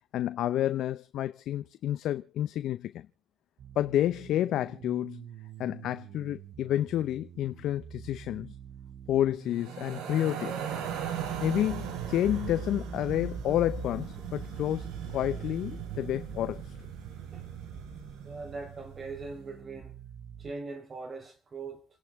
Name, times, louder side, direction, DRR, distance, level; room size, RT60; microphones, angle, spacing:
voice 1, 0.1-3.1 3.8-5.2 5.6-8.5 9.1-10.6 11.4-16.7, left 12 dB, 75° left, 0.6 m, -30 dB
sound 1, 3.6-20.5, right 8 dB, 70° right, 2.5 m, -48 dB
sound 2, 9.5-18.8, right 7 dB, 85° right, 4.6 m, -38 dB
voice 2, 18.2-20.0 20.4-21.9, right 3 dB, 35° right, 4.1 m, -41 dB
28.5 x 11.0 x 3.6 m
cardioid pair, 85°, 0 cm